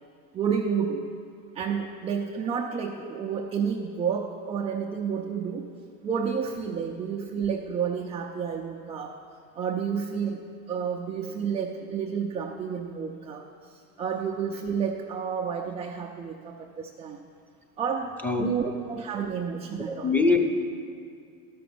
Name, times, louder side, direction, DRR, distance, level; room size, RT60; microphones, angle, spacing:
voice 1, 0.3-1.1 1.5-5.7 6.0-9.2 9.5-10.4 10.7-17.3 17.8-18.1 18.4-20.1, right 6 dB, 15° right, 0 dB, 0.4 m, -30 dB
voice 2, 19.9-20.4, left 4 dB, 5° left, 2 dB, 0.8 m, -23 dB
12.5 x 6.0 x 6.9 m, 2.4 s
hypercardioid pair, 110°, 46 cm